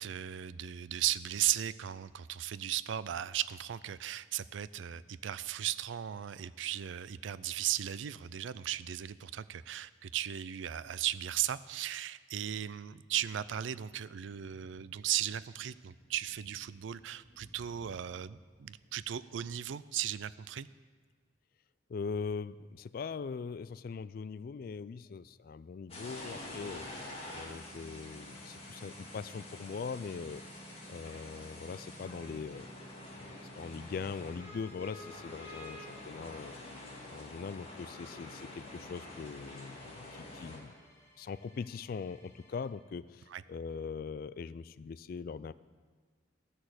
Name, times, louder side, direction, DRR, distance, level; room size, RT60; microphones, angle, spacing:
voice 1, 0.0-20.7 43.3-43.4, right 11 dB, 75° right, 17 dB, 0.4 m, -36 dB
sound 1, 13.7-19.2, equal, 40° right, 2.0 m, -62 dB
voice 2, 21.9-26.9 27.3-30.4 30.9-32.7 33.6-36.6 37.1-40.7 41.2-45.5, left 5 dB, 50° left, 17 dB, 0.3 m, -41 dB
sound 2, 25.9-40.6, left 1 dB, 30° left, 2.0 m, -47 dB
sound 3, 32.6-42.7, equal, 15° left, 2.2 m, -65 dB
13.0 x 6.4 x 7.9 m, 1.6 s
head